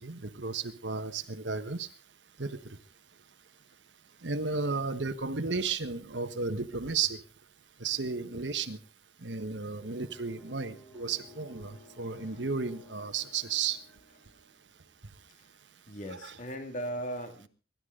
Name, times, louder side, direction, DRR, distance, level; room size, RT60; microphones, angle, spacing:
voice 1, 0.0-1.9 2.4-2.6 4.2-7.2 7.8-8.8 9.2-13.8, right 4 dB, 80° right, 9 dB, 1.3 m, -33 dB
sound 1, 9.7-14.9, equal, 25° left, 7.5 m, -55 dB
voice 2, 12.0-12.3 15.4-15.5 15.9-17.5, right 1 dB, 45° left, 5 dB, 2.3 m, -38 dB
23.0 x 12.0 x 3.8 m, 0.34 s
head